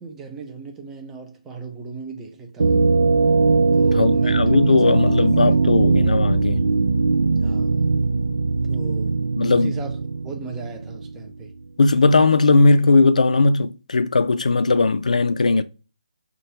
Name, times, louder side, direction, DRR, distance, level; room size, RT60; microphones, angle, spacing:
voice 1, 0.0-2.9 3.7-4.6 4.9-5.7 7.4-7.9 8.7-9.2 9.5-9.9 10.2-11.5, right 4 dB, 5° right, 0.4 m, -37 dB
sound 1, 2.6-11.3, right 4 dB, 80° right, 0.3 m, -20 dB
voice 2, 3.9-6.7 9.4-9.7 11.8-15.6, left 3 dB, 75° left, 0.5 m, -18 dB
5.8 x 2.3 x 3.2 m
hypercardioid pair, 170°, 4 cm